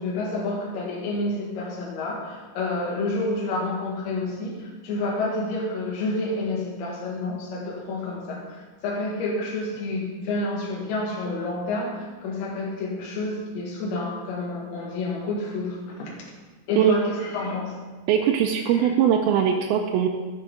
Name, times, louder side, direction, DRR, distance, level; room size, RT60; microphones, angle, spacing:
voice 1, 0.0-16.1 16.7-17.8 18.8-18.9, left 2 dB, 50° left, -4 dB, 2.7 m, -29 dB
voice 2, 18.1-20.1, right 9 dB, 85° right, 2 dB, 2.4 m, -21 dB
13.5 x 6.0 x 3.9 m, 1.3 s
omnidirectional pair, 4.4 m